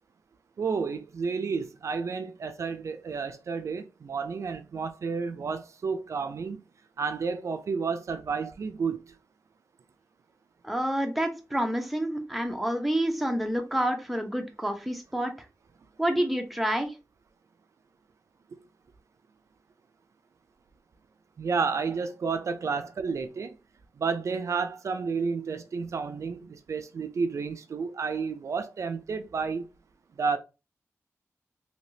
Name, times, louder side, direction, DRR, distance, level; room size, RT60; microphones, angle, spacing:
voice 1, 0.6-6.6 7.0-9.0 21.4-23.5 24.0-29.7 30.2-30.4, right 5 dB, 70° right, 0.4 m, -31 dB
voice 2, 10.6-15.3 16.0-16.9, right 1 dB, ahead, 0.7 m, -28 dB
3.3 x 2.7 x 2.7 m
wide cardioid pair, 115°, 5 cm